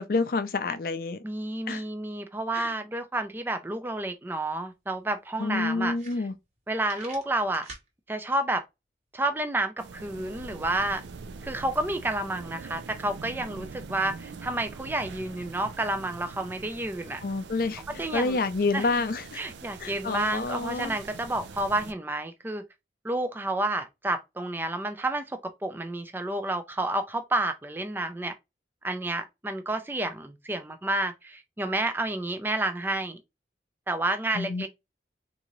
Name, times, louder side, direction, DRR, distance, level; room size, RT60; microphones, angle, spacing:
voice 1, 0.0-1.2 1.7-1.8 2.5-2.7 5.4-6.3 17.2-17.8 18.1-19.4 19.8-20.9 34.3-34.7, left 3 dB, 55° left, 0.4 m, -28 dB
voice 2, 1.2-6.0 6.7-7.7 8.1-8.6 9.1-11.0 11.4-17.2 17.9-18.4 18.7-18.9 19.4-22.6 23.0-28.3 28.8-33.2 33.9-34.7, right 2 dB, 10° right, 0.3 m, -30 dB
sound 1, 4.5-4.6 4.9-5.0 5.5-5.6 5.9-6.6 6.9-7.9, right 3 dB, 40° right, 1.2 m, -45 dB
sound 2, 9.8-21.9, right 4 dB, 85° right, 0.4 m, -43 dB
3.7 x 2.6 x 2.9 m
head